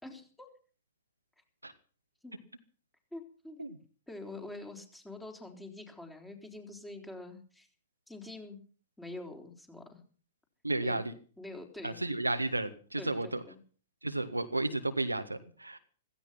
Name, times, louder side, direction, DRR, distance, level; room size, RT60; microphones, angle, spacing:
voice 1, 0.0-0.5 2.2-2.4 3.1-3.7 4.1-7.7 8.1-8.6 9.0-10.0 10.8-11.0 11.4-12.0 13.0-13.6, left 2 dB, 5° left, 4 dB, 3.9 m, -45 dB
voice 2, 10.6-11.1 11.8-13.4 14.0-15.8, right 2 dB, 90° right, 9 dB, 1.6 m, -32 dB
16.0 x 15.5 x 5.8 m, 0.41 s
figure-of-eight pair, 105°, 0 cm